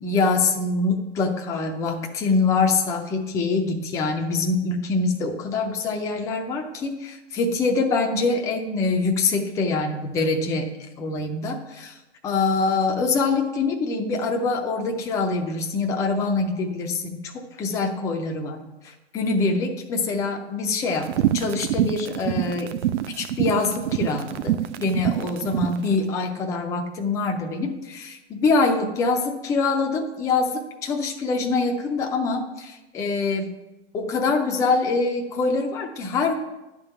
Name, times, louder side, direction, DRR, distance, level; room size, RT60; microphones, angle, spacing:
voice 1, 0.0-10.7 11.0-11.9 12.2-18.6 18.8-22.7 23.2-33.5 33.9-36.3, left 3 dB, 10° left, 3 dB, 0.4 m, -24 dB
Low tone tapping, 21.0-25.8, right 12 dB, 75° right, 0.6 m, -25 dB
10.5 x 3.7 x 6.8 m, 1.0 s
hypercardioid pair, 140°, 36 cm